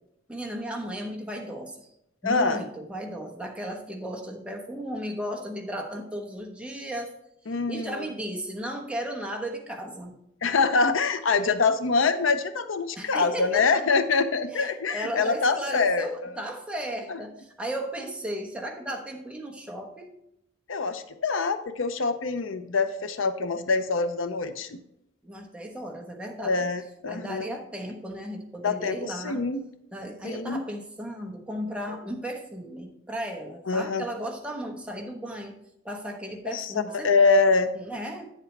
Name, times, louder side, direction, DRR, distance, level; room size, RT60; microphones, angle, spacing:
voice 1, 0.3-1.9 2.2-7.1 7.7-10.2 12.9-13.8 14.5-20.1 25.2-26.7 27.1-29.4 29.9-35.5 35.8-37.1 37.7-38.3, right 1 dB, 5° right, 1 dB, 1.1 m, -35 dB
voice 2, 2.2-2.6 7.5-8.0 10.4-16.4 17.1-17.2 20.7-24.8 26.4-27.5 28.6-29.6 30.2-30.6 33.7-34.0 36.5-37.7, left 4 dB, 80° left, 10 dB, 0.7 m, -25 dB
9.4 x 7.4 x 3.3 m, 0.80 s
head